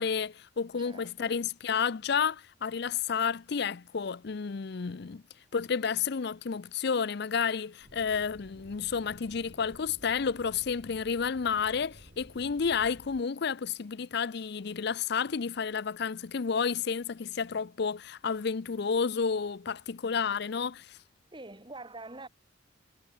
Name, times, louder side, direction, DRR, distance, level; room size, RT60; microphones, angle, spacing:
voice 1, 0.0-5.2 5.5-21.0, left 6 dB, 60° left, 0.5 m, -31 dB
voice 2, 0.8-1.4 21.3-22.3, right 2 dB, 25° right, 3.6 m, -45 dB
sound 1, 7.8-13.2, right 1 dB, 50° right, 3.0 m, -54 dB
head